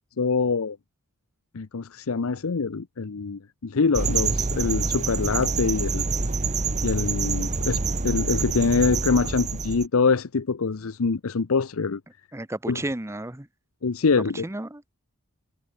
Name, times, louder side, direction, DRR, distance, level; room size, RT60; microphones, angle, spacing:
voice 1, 0.2-0.8 1.5-6.0 6.8-12.0 12.7-12.8 13.8-14.5, left 4 dB, 75° left, 0.7 m, -24 dB
sound 1, 3.9-9.9, right 4 dB, 35° right, 1.2 m, -26 dB
voice 2, 12.3-13.5 14.4-14.9, right 1 dB, 15° right, 0.8 m, -32 dB
head